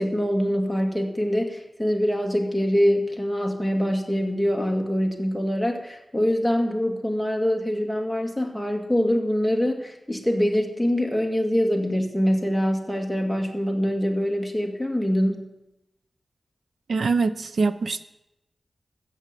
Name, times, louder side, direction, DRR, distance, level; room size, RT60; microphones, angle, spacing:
voice 1, 0.0-15.5, equal, ahead, 2 dB, 2.1 m, -24 dB
voice 2, 16.9-18.0, right 4 dB, 75° right, 12 dB, 0.8 m, -23 dB
14.0 x 7.5 x 8.4 m, 0.91 s
wide cardioid pair, 100°, 0 cm